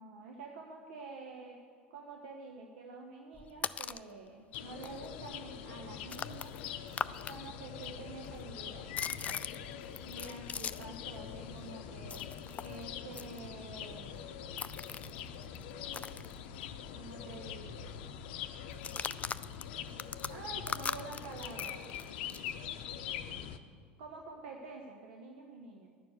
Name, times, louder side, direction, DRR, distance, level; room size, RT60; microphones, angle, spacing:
voice 1, 0.0-1.6 1.9-6.5 7.3-8.9 10.0-14.3 16.9-18.0 20.3-21.9 24.0-25.9, right 3 dB, 65° right, 2 dB, 0.9 m, -48 dB
sound 1, 3.3-4.1 4.5-4.6 4.8-7.4 7.6-11.0 11.3-16.9 17.2-17.3 17.6-18.0 18.7-22.5, left 6 dB, 20° left, 0.4 m, -41 dB
sound 2, 4.5-23.6, left 8 dB, 60° left, 0.6 m, -43 dB
10.5 x 6.9 x 7.9 m, 2.1 s
figure-of-eight pair, 75°, 6 cm